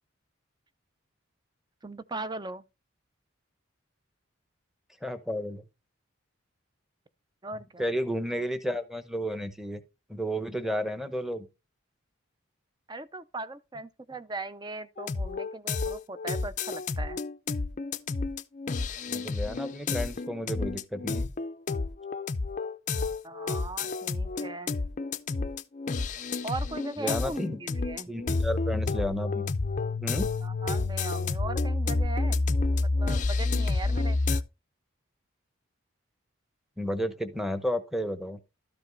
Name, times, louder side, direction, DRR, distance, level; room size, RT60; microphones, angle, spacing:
voice 1, 1.8-2.6 7.4-7.8 12.9-17.2 23.2-24.8 26.4-28.1 30.4-32.4 32.7-34.4, right 2 dB, 20° right, 0.5 m, -39 dB
voice 2, 5.0-5.6 7.8-9.8 10.1-11.5 19.1-21.3 22.9-23.1 27.0-27.6 28.1-29.5 30.0-30.3 36.8-38.4, equal, ahead, 0.9 m, -32 dB
sound 1, 15.0-34.4, left 3 dB, 35° left, 0.5 m, -29 dB
12.5 x 5.2 x 4.0 m
head